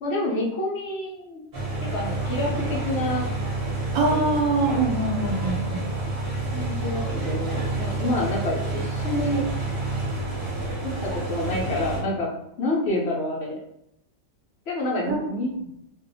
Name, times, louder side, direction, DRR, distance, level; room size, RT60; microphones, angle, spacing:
voice 1, 0.0-1.4 1.8-3.3 6.5-9.4 10.8-12.3 12.6-13.6 14.7-15.5, left 1 dB, 60° left, -3 dB, 0.8 m, -28 dB
sound 1, 1.5-12.0, right 2 dB, 50° right, 1.0 m, -28 dB
voice 2, 3.9-5.8 15.1-15.2, right 2 dB, 80° right, -2 dB, 1.2 m, -23 dB
2.6 x 2.3 x 2.6 m, 0.79 s
omnidirectional pair, 1.4 m